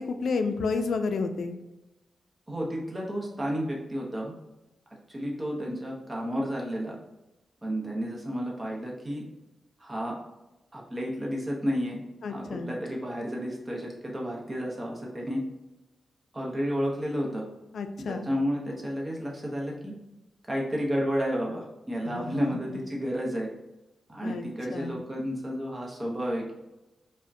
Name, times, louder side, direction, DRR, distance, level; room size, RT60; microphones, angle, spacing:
voice 1, 0.0-1.5 12.2-12.7 17.7-18.3 22.0-22.8 24.2-24.5 24.7-25.0, left 4 dB, 75° left, 7 dB, 0.3 m, -31 dB
voice 2, 2.5-4.3 5.1-7.0 7.6-9.2 9.8-10.1 10.7-12.0 12.3-15.4 16.3-17.4 18.1-19.9 20.5-23.5 24.1-26.6, equal, 15° right, -3 dB, 0.7 m, -31 dB
4.8 x 2.1 x 2.6 m, 0.97 s
wide cardioid pair, 130°, 0 cm